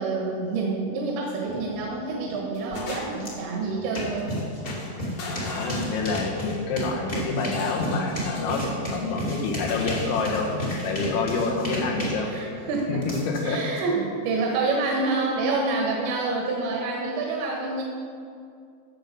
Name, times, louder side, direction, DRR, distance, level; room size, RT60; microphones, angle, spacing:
voice 1, 0.0-4.3 12.2-17.8, right 3 dB, 80° right, -1 dB, 3.3 m, -27 dB
sound 1, 1.5-1.9 2.3-3.4 4.2-4.4 4.6-6.5 7.4-8.8 9.7-10.7, left 2 dB, 60° left, 1.8 m, -37 dB
sound 2, 3.2-3.3 3.6-13.8, equal, 45° left, 0.7 m, -32 dB
voice 2, 5.4-10.5 10.8-12.3 12.9-13.0 13.3-13.6, left 4 dB, 85° left, 0 dB, 3.7 m, -27 dB
14.0 x 7.0 x 5.3 m, 2.3 s
omnidirectional pair, 5.2 m